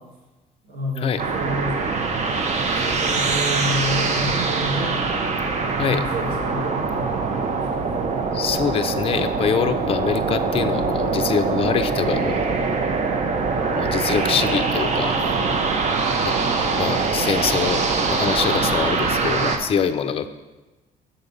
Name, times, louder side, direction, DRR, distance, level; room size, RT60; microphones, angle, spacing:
voice 1, 0.6-1.8 2.8-5.0 5.8-8.0, equal, 75° right, -3 dB, 1.8 m, -29 dB
sound 1, 1.2-19.6, right 4 dB, 45° right, 0.7 m, -23 dB
voice 2, 5.7-6.1 8.3-12.5 13.7-15.2 16.2-16.4 16.6-20.3, left 7 dB, 35° left, 10 dB, 0.4 m, -24 dB
6.9 x 3.9 x 5.3 m, 1.1 s
cardioid pair, 110°, 17 cm